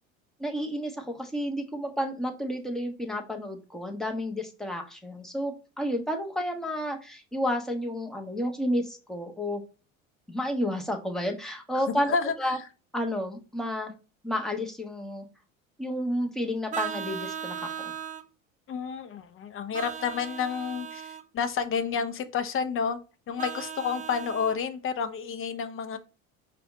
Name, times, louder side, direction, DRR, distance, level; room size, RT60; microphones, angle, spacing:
voice 1, 0.4-9.6 10.3-12.6 12.9-13.9 14.2-15.2 15.8-17.7, equal, ahead, 2 dB, 1.2 m, -31 dB
voice 2, 11.7-12.6 18.7-23.0 23.3-26.0, left 6 dB, 35° left, 10 dB, 0.7 m, -30 dB
Vehicle horn car horn honking, 16.7-18.3 19.7-21.2 23.4-24.6, right 8 dB, 20° right, 0.4 m, -37 dB
4.9 x 2.5 x 4.1 m, 0.33 s
hypercardioid pair, 70°, 40 cm